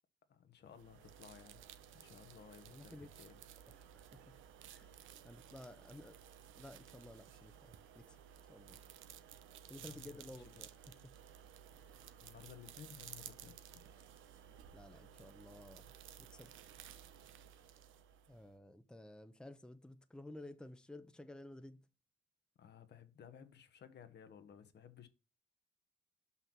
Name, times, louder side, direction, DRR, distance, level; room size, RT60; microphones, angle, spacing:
voice 1, 0.3-1.6 1.9-3.4 9.8-10.2 10.5-10.6 12.2-13.8 22.6-25.1, left 8 dB, 60° left, 1.2 m, -57 dB
sound 1, 0.7-18.5, right 9 dB, 80° right, 0.8 m, -56 dB
voice 2, 2.7-3.1 3.7-4.9 5.2-6.2 6.5-8.2 8.5-8.8 9.7-11.1 11.8-12.2 14.7-15.9 16.2-16.5 18.3-21.9, left 1 dB, 5° left, 0.8 m, -54 dB
5.8 x 5.7 x 6.0 m
cardioid pair, 90°, 20 cm